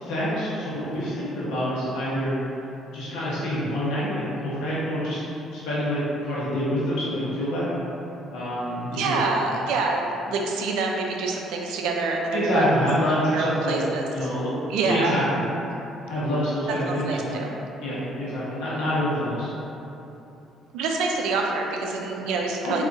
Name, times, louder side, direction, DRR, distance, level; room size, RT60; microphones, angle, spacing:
voice 1, 0.0-2.3 2.9-5.2 5.5-7.7 8.3-9.5 12.3-13.8 14.1-14.5 14.8-15.4 16.1-17.4 17.8-19.5 22.6-22.8, equal, 80° left, -9 dB, 1.1 m, -26 dB
voice 2, 8.9-12.6 13.3-14.3 14.7-15.2 16.9-17.5 20.7-22.8, right 3 dB, 80° right, 0 dB, 0.4 m, -26 dB
3.7 x 2.7 x 2.6 m, 2.9 s
supercardioid pair, 70°, 0 cm